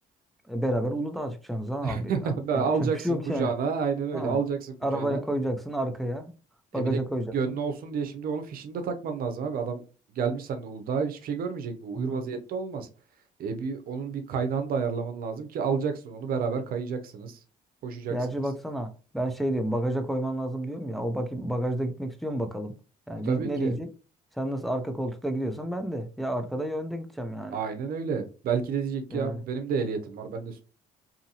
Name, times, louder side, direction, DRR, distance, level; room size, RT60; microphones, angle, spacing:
voice 1, 0.5-3.5 4.1-4.4 4.8-6.3 6.7-7.6 11.9-12.2 18.1-22.7 23.1-23.9 24.4-27.6 29.1-29.4, right 1 dB, ahead, 0.5 m, -30 dB
voice 2, 1.8-5.2 6.7-7.0 7.3-9.8 10.1-12.9 13.4-17.4 17.8-18.2 23.2-23.7 27.5-30.6, right 5 dB, 65° right, 0.7 m, -30 dB
2.8 x 2.6 x 2.7 m
cardioid pair, 85°, 16 cm